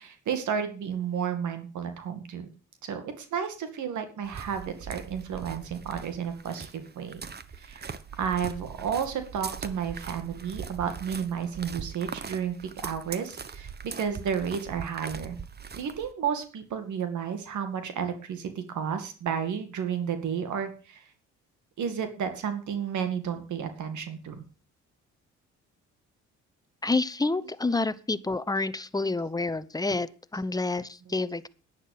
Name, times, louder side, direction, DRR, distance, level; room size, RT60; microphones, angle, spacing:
voice 1, 0.0-2.5 2.8-7.2 7.6-12.6 12.8-15.4 15.8-21.1 21.8-24.4, right 7 dB, 75° right, 8 dB, 2.3 m, -32 dB
sound 1, 4.2-16.1, right 6 dB, 35° right, 1.1 m, -41 dB
voice 2, 26.8-31.5, left 3 dB, 10° left, 14 dB, 0.9 m, -28 dB
11.0 x 9.9 x 6.7 m, 0.36 s
cardioid pair, 90°, 30 cm